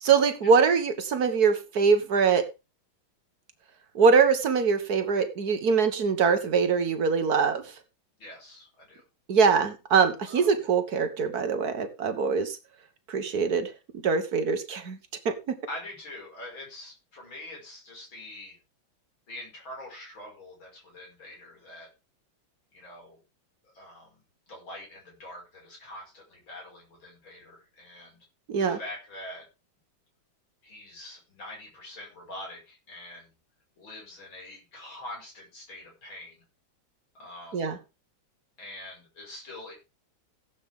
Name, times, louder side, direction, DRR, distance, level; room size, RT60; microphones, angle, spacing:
voice 1, 0.0-2.5 4.0-7.6 9.3-12.6 13.1-13.7 14.0-15.0 15.3-15.6 28.5-28.8 37.5-37.8, right 5 dB, 50° right, 9 dB, 1.8 m, -23 dB
voice 2, 8.2-9.0 10.3-10.5 15.7-18.6 19.3-21.9 22.7-23.2 23.6-28.2 28.6-29.4 30.6-33.3 33.8-36.4 37.1-37.7 38.6-39.7, left 1 dB, 75° left, -1 dB, 6.6 m, -44 dB
16.0 x 8.4 x 3.7 m, 0.28 s
omnidirectional pair, 2.2 m